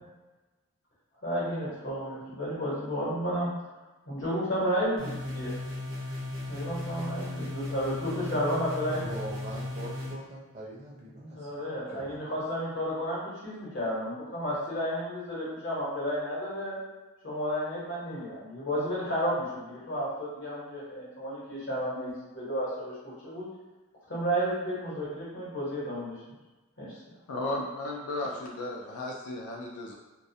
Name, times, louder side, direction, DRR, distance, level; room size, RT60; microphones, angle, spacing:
voice 1, 1.2-3.5 4.0-5.5 6.5-9.1 11.3-16.8 17.2-22.9 23.2-23.5 24.1-26.1 26.8-26.9, equal, 55° left, -8 dB, 0.9 m, -32 dB
sound 1, 5.0-10.1, left 2 dB, 75° right, 0.7 m, -36 dB
voice 2, 8.9-11.5 11.9-12.2, right 1 dB, 30° right, -5 dB, 0.5 m, -42 dB
voice 3, 27.3-30.0, left 2 dB, 90° left, -1 dB, 0.3 m, -34 dB
2.2 x 2.1 x 2.6 m, 1.2 s
head